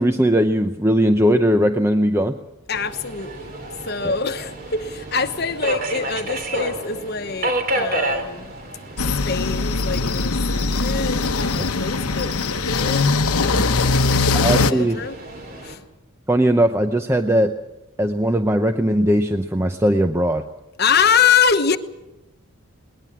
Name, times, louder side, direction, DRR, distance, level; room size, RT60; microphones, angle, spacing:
voice 1, 0.0-2.4 4.0-4.1 13.8-13.9 14.3-15.0 16.3-17.5 18.0-20.4, equal, 10° right, 0.7 m, -19 dB
voice 2, 2.7-3.5 3.9-8.5 9.3-15.2 15.6-15.8 20.8-21.8, left 6 dB, 45° left, 1.1 m, -24 dB
Subway metro underground, 2.7-15.8, right 1 dB, 40° right, 3.1 m, -31 dB
sound 1, 9.0-14.7, left 3 dB, 90° left, 1.1 m, -21 dB
21.0 x 20.0 x 7.3 m
head